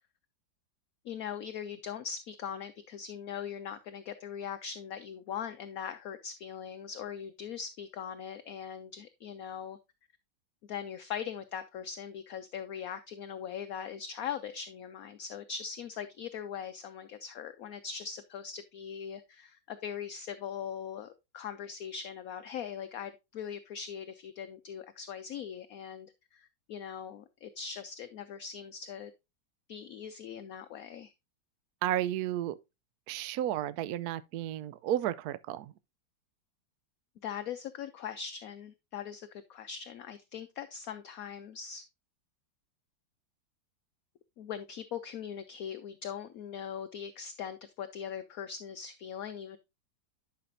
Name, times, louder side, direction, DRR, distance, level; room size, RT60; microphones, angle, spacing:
voice 1, 1.0-9.8 10.7-29.1 29.7-31.1 37.2-41.8 44.4-49.6, left 8 dB, 70° left, 0.9 m, -41 dB
voice 2, 31.8-32.6 33.1-35.7, right 12 dB, 70° right, 0.9 m, -32 dB
11.0 x 5.9 x 2.6 m
omnidirectional pair, 2.0 m